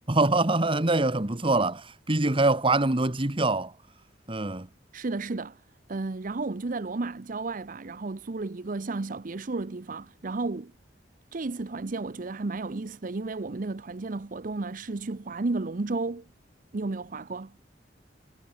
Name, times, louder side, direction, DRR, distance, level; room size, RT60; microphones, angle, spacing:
voice 1, 0.1-3.7 4.3-4.7, right 2 dB, 30° right, 1.5 m, -24 dB
voice 2, 4.9-5.6 5.9-10.7 11.3-16.3 16.7-17.6, right 3 dB, 50° right, 0.7 m, -33 dB
head